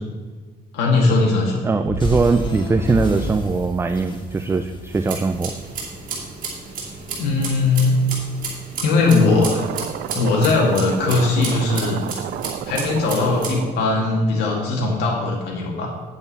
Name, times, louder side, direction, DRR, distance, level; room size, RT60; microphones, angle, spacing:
voice 1, 0.7-1.6 7.2-8.0 8.8-9.6 10.1-12.0 12.6-15.9, left 3 dB, 85° left, -2 dB, 1.8 m, -19 dB
voice 2, 1.6-5.5, right 4 dB, 15° right, 8 dB, 0.4 m, -21 dB
sound 1, 1.9-6.2, equal, 25° left, 1.6 m, -30 dB
sound 2, 4.9-13.6, right 4 dB, 55° right, 2.8 m, -33 dB
sound 3, 9.2-15.0, right 11 dB, 70° right, 0.5 m, -32 dB
9.1 x 7.9 x 4.1 m, 1.4 s
cardioid pair, 110°, 17 cm